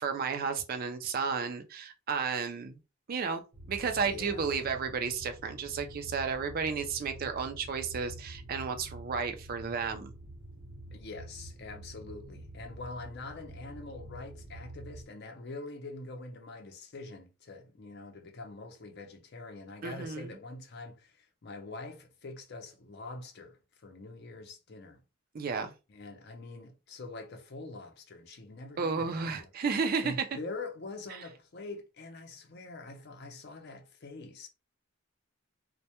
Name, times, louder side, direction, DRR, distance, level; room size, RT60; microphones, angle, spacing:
voice 1, 0.0-2.8 3.1-10.1 19.8-20.4 25.3-25.7 28.8-30.2, right 5 dB, 45° right, 0.4 m, -32 dB
sound 1, 3.5-15.1, right 1 dB, 85° right, 0.8 m, -47 dB
voice 2, 4.0-4.5 10.9-25.0 25.9-29.1 29.4-29.5 30.0-34.5, left 3 dB, 50° left, 0.5 m, -44 dB
2.2 x 2.1 x 2.8 m
head